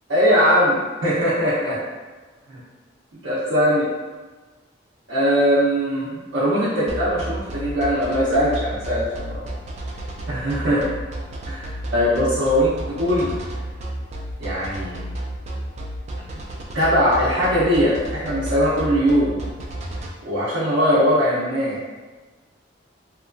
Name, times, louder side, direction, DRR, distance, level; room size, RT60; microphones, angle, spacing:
voice 1, 0.1-1.8 2.5-2.6 3.1-3.9 5.1-9.4 10.3-10.9 11.5-13.3 14.4-15.0 16.7-19.4 20.2-21.8, equal, 75° right, -10 dB, 0.6 m, -20 dB
sound 1, 6.9-20.1, right 1 dB, 35° right, 0.3 m, -31 dB
2.8 x 2.3 x 2.4 m, 1.3 s
head